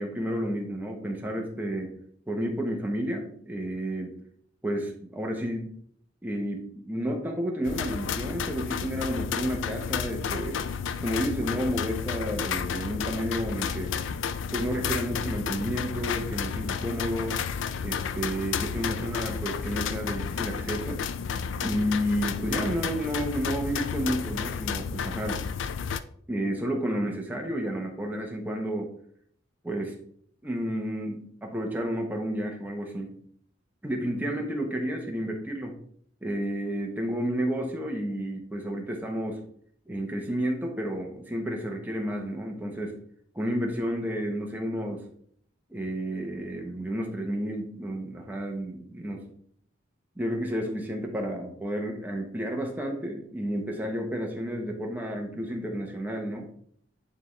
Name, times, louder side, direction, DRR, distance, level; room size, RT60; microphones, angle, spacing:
voice 1, 0.0-1.9 2.3-4.2 4.6-5.7 6.2-10.6 11.0-14.0 14.5-17.4 17.8-21.0 21.6-25.4 26.3-28.9 29.6-29.9 30.4-33.1 33.8-35.7 36.2-39.4 39.9-43.0 43.3-45.0 45.7-49.2 50.2-56.5, equal, 10° right, 1 dB, 1.0 m, -31 dB
sound 1, 7.6-26.0, left 6 dB, 65° left, 0.4 m, -32 dB
9.6 x 3.6 x 3.2 m, 0.62 s
head